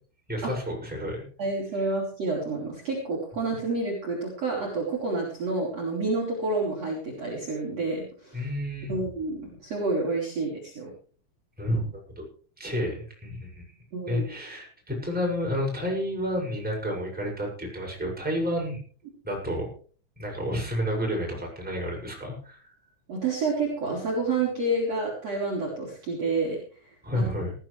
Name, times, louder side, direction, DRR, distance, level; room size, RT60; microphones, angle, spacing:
voice 1, 0.3-1.2 8.3-8.9 11.6-12.2 12.6-13.6 14.1-18.8 19.2-19.7 20.2-22.6 27.0-27.5, equal, ahead, -2 dB, 6.0 m, -30 dB
voice 2, 1.4-8.4 8.9-10.9 13.9-14.3 23.1-27.3, right 3 dB, 35° right, -2 dB, 4.5 m, -29 dB
19.5 x 14.5 x 3.3 m, 0.42 s
omnidirectional pair, 5.7 m